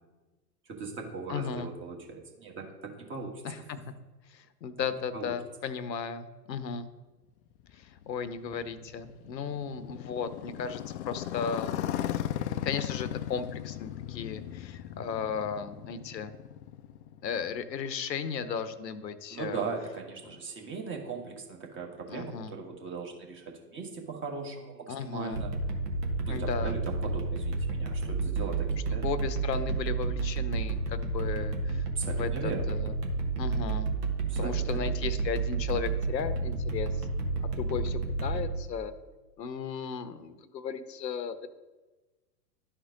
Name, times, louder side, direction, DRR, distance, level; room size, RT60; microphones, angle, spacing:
voice 1, 0.8-3.3 5.1-5.3 19.3-25.5 26.3-29.0 31.9-32.6 34.3-34.9, right 4 dB, 25° right, 1 dB, 1.6 m, -39 dB
voice 2, 1.3-1.7 3.4-3.8 4.3-6.9 7.7-11.8 12.6-16.3 17.2-19.6 20.2-20.4 22.1-22.6 24.9-25.4 26.3-26.8 28.9-33.0 33.4-33.9 34.4-37.1 37.4-38.9 39.4-41.5, left 6 dB, 80° left, 12 dB, 0.9 m, -35 dB
Motorcycle, 7.7-17.6, left 12 dB, 45° left, 0.5 m, -37 dB
sound 1, 25.3-38.5, right 3 dB, 70° right, 1.6 m, -31 dB
11.5 x 4.5 x 3.8 m, 1.2 s
hypercardioid pair, 100°, 50 cm